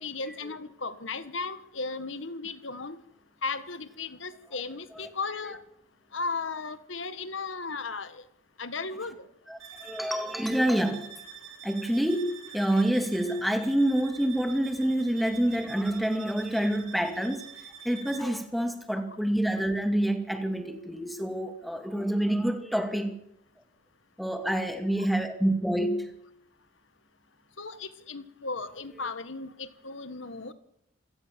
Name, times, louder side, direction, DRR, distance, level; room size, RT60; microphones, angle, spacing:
voice 1, 0.0-3.0 3.4-5.6 6.1-8.2 8.6-9.2 27.6-30.5, left 4 dB, 75° left, 1.6 m, -35 dB
voice 2, 9.5-11.1 11.6-17.5 17.8-23.1 24.2-26.1, right 1 dB, ahead, 2.3 m, -27 dB
sound 1, 9.6-18.4, right 7 dB, 85° right, 4.2 m, -46 dB
27.5 x 16.5 x 7.5 m
head